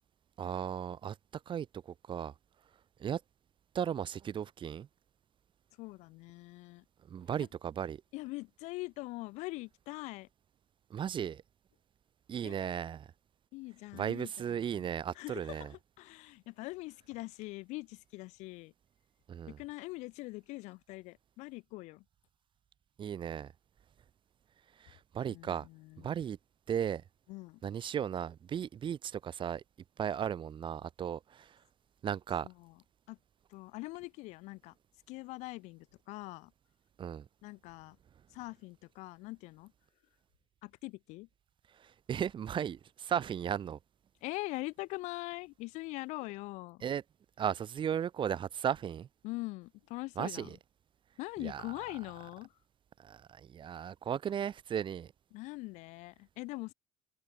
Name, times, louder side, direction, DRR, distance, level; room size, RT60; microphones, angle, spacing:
voice 1, 0.4-1.2 1.5-2.3 3.0-3.2 3.7-4.9 7.1-8.0 10.9-11.4 12.3-13.1 13.9-15.7 19.3-19.6 23.0-23.5 24.8-25.7 26.0-26.4 26.7-27.0 27.6-29.6 30.0-31.6 32.0-32.5 37.0-37.2 41.8-43.8 46.8-47.0 47.4-49.1 50.2-50.6 51.4-51.6 53.0-55.1, right 9 dB, 40° right, 1.0 m, -36 dB
voice 2, 5.8-6.8 8.1-10.3 12.4-12.6 13.5-14.7 15.1-18.7 19.5-22.0 25.2-26.1 27.3-27.6 32.4-32.7 33.1-33.2 33.5-34.7 35.1-36.5 37.4-38.0 38.3-39.7 40.6-41.3 44.2-46.9 49.2-50.6 51.2-52.5 55.3-56.7, left 22 dB, 60° left, 0.8 m, -43 dB
open air
hypercardioid pair, 65°, 13 cm